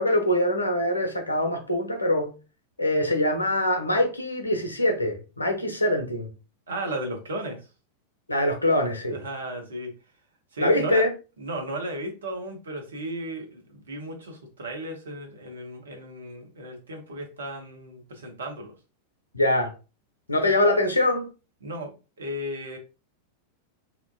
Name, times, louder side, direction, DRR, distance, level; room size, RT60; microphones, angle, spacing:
voice 1, 0.0-2.3 2.8-6.3 8.3-9.2 10.6-11.1 19.3-19.7 20.3-21.3, left 1 dB, 80° left, 0.6 m, -23 dB
voice 2, 6.7-7.7 9.1-9.9 10.5-11.0 11.4-18.7 20.4-20.5 21.6-22.8, right 1 dB, 70° right, 0.8 m, -35 dB
2.8 x 2.1 x 2.7 m
figure-of-eight pair, 90°, 0 cm